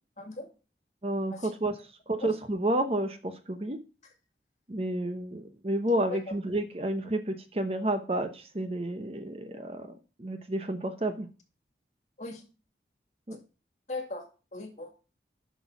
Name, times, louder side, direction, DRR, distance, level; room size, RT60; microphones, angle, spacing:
voice 1, 0.2-0.5 1.3-1.5 2.2-2.3 6.1-6.4 12.2-12.4 13.9-14.9, left 2 dB, 40° left, 4 dB, 2.1 m, -39 dB
voice 2, 1.0-1.7 2.1-3.8 4.7-11.3 13.3-13.4, right 1 dB, 35° right, 8 dB, 0.8 m, -30 dB
8.0 x 6.2 x 5.9 m, 0.34 s
head